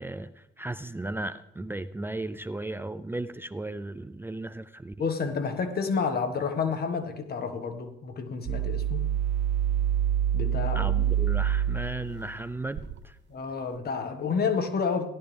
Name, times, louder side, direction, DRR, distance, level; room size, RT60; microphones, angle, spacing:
voice 1, 0.0-4.9 10.7-13.2, right 2 dB, 10° right, 0.5 m, -35 dB
voice 2, 5.0-9.0 10.3-11.1 13.3-15.1, left 5 dB, 50° left, 1.6 m, -30 dB
sound 1, 8.5-13.0, right 10 dB, 65° right, 0.7 m, -27 dB
16.5 x 11.5 x 3.4 m
cardioid pair, 90°, 20 cm